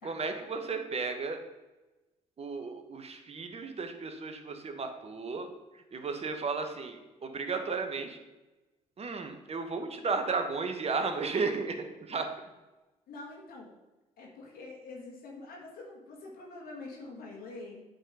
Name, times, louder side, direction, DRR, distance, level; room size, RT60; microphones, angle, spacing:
voice 1, 0.0-1.4 2.4-5.5 5.7-8.2 9.0-12.3, right 4 dB, 40° right, 6 dB, 1.2 m, -34 dB
voice 2, 13.1-13.7 14.2-17.8, left 3 dB, 65° left, -2 dB, 1.6 m, -45 dB
8.8 x 4.0 x 5.0 m, 1.1 s
hypercardioid pair, 50°, 16 cm